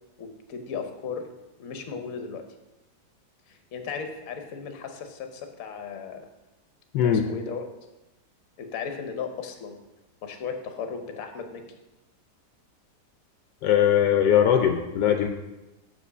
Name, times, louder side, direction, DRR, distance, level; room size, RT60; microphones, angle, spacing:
voice 1, 0.2-1.3 1.6-2.4 3.5-6.3 7.0-7.6 8.6-9.8 10.2-11.6, left 6 dB, 60° left, 6 dB, 1.2 m, -36 dB
voice 2, 13.6-15.3, left 9 dB, 75° left, 5 dB, 1.2 m, -20 dB
6.1 x 5.0 x 6.7 m, 1.0 s
omnidirectional pair, 1.9 m